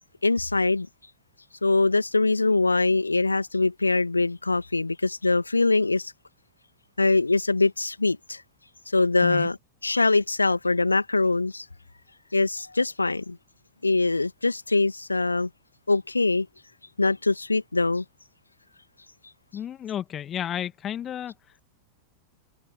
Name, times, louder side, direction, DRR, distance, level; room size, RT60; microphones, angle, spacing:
voice 1, 0.2-0.9 1.6-6.1 7.0-8.4 8.9-9.6 9.8-11.7 12.3-13.4 13.8-15.5 15.9-16.5 17.0-18.0, left 3 dB, 80° left, 2.1 m, -23 dB
voice 2, 19.5-21.3, left 10 dB, 25° left, 2.0 m, -32 dB
figure-of-eight pair, 90°, 0 cm